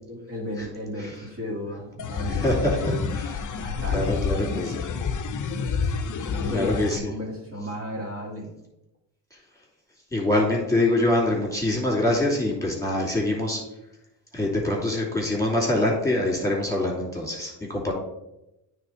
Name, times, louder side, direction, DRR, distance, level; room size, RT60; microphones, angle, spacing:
voice 1, 0.1-2.6 2.8-3.1 3.6-4.7 6.3-8.5, equal, 30° right, -3 dB, 1.9 m, -34 dB
sound 1, 2.0-7.0, left 5 dB, 45° left, 0.7 m, -28 dB
voice 2, 2.3-3.3 3.9-4.8 6.5-7.0 10.1-13.6 14.3-17.9, left 1 dB, 5° left, -3 dB, 2.4 m, -24 dB
8.9 x 3.5 x 4.4 m, 0.91 s
cardioid pair, 90°, 44 cm